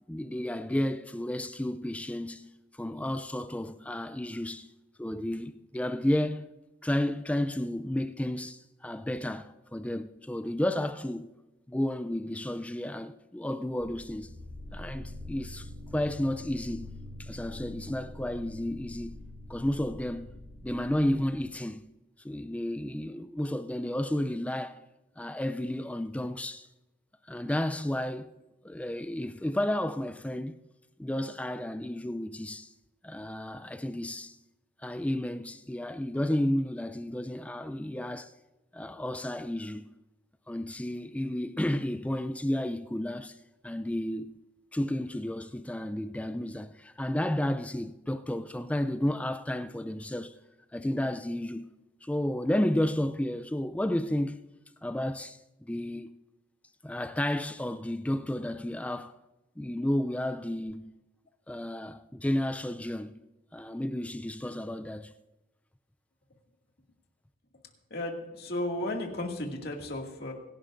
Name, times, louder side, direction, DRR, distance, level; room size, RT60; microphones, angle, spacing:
voice 1, 0.1-4.7 5.0-6.5 6.8-11.3 11.7-14.3 14.7-16.9 17.2-19.2 19.5-20.3 20.6-21.8 22.2-24.8 25.2-26.7 27.3-28.3 28.6-30.6 31.0-32.7 33.0-34.4 34.8-38.3 38.7-39.9 40.5-43.4 43.6-44.4 44.7-50.3 50.7-51.7 52.0-54.4 54.8-56.1 56.8-59.1 59.6-61.0 61.5-63.1 63.5-65.1, left 1 dB, 5° left, 0.3 m, -32 dB
sound 1, 13.8-21.6, left 1 dB, 85° right, 5.1 m, -45 dB
voice 2, 67.9-70.3, left 1 dB, 55° left, 2.2 m, -34 dB
25.0 x 11.5 x 2.6 m
head